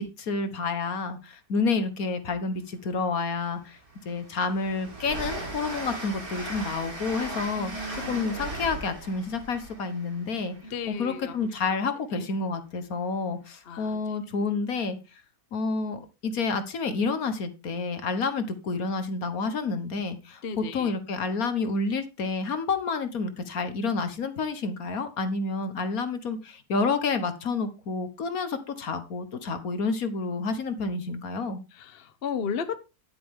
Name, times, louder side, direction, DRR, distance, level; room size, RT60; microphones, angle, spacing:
voice 1, 0.0-3.8 4.1-7.7 8.1-10.6 10.9-15.0 15.5-31.6, left 4 dB, 70° left, 10 dB, 1.8 m, -29 dB
Train, 2.9-3.0 3.5-11.2, right 2 dB, 70° right, 4.2 m, -38 dB
voice 2, 7.6-8.2 10.6-11.5 12.2-12.3 13.7-14.0 20.4-20.9 31.7-32.8, left 6 dB, 45° left, 12 dB, 1.0 m, -34 dB
11.5 x 9.4 x 3.7 m, 0.28 s
omnidirectional pair, 1.6 m